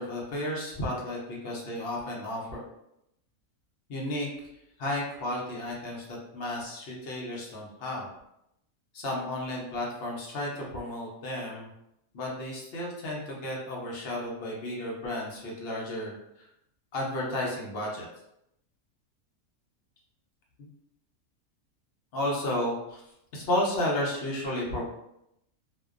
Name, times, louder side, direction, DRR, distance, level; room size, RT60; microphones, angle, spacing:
voice 1, 0.0-2.6 3.9-4.3 4.8-8.1 8.9-11.7 12.1-16.5 16.9-18.1 22.1-23.0 23.3-24.9, left 1 dB, 60° left, -3 dB, 0.6 m, -33 dB
2.5 x 2.2 x 2.3 m, 0.80 s
omnidirectional pair, 1.6 m